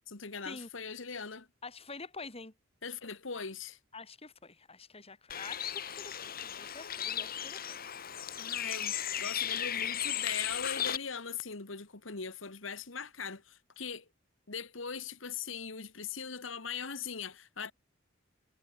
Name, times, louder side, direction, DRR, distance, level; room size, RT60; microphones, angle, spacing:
voice 1, 0.0-1.5 2.8-3.8 8.4-14.1 14.5-17.7, left 6 dB, 85° left, 2.0 m, -40 dB
voice 2, 1.6-2.5 3.9-7.9, left 3 dB, 30° left, 2.9 m, -47 dB
Bird, 5.3-11.0, left 10 dB, 50° left, 1.8 m, -36 dB
head